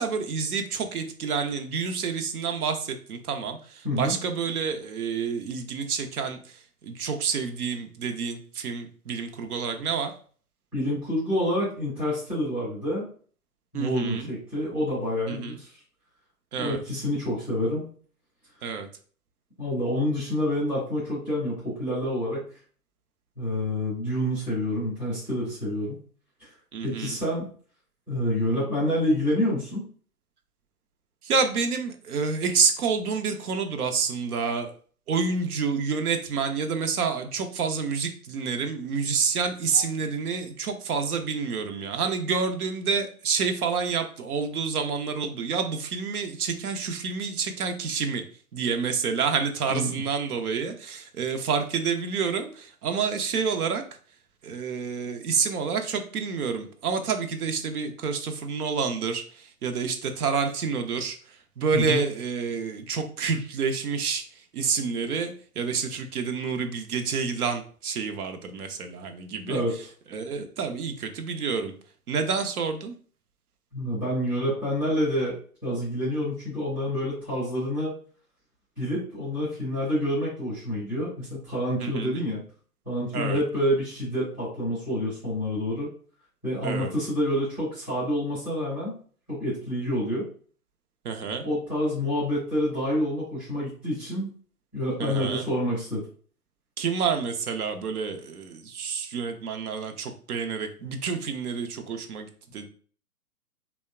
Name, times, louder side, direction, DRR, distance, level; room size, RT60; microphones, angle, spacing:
voice 1, 0.0-10.1 13.7-14.3 15.3-15.6 16.5-16.8 18.6-18.9 26.7-27.2 31.2-34.8 35.1-48.2 48.5-53.8 54.4-69.6 70.1-71.7 72.1-72.9 81.8-82.1 83.1-83.4 86.6-86.9 91.0-91.4 95.0-95.4 96.8-102.7, right 5 dB, 70° right, 5 dB, 0.6 m, -28 dB
voice 2, 10.7-13.1 13.7-15.7 16.6-17.8 19.6-22.4 23.4-26.0 26.4-26.5 26.8-27.5 28.1-29.8 39.7-39.8 49.7-50.0 61.7-62.1 69.4-69.7 73.7-77.9 78.8-82.4 82.9-85.9 86.4-88.9 89.3-90.3 91.4-94.3 94.7-96.0, equal, 5° right, -11 dB, 0.5 m, -28 dB
2.7 x 2.1 x 2.2 m, 0.43 s
figure-of-eight pair, 130°, 46 cm